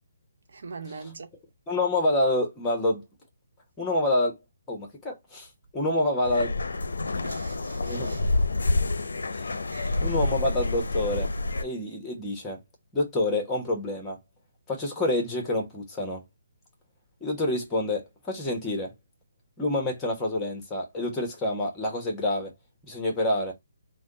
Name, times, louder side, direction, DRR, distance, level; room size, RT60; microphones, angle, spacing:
voice 1, 0.5-1.3 7.2-8.2 9.7-10.0, right 4 dB, 65° right, 0.7 m, -42 dB
voice 2, 1.7-3.0 3.8-4.4 4.7-5.5 5.7-6.5 7.8-8.1 9.3-9.5 10.0-11.3 11.6-12.6 12.9-14.2 14.7-16.2 17.2-18.9 19.6-22.5 22.9-23.5, left 1 dB, 15° left, 1.2 m, -27 dB
sound 1, 6.2-11.6, left 2 dB, 80° left, 0.5 m, -28 dB
3.4 x 2.2 x 3.8 m
hypercardioid pair, 150°, 0 cm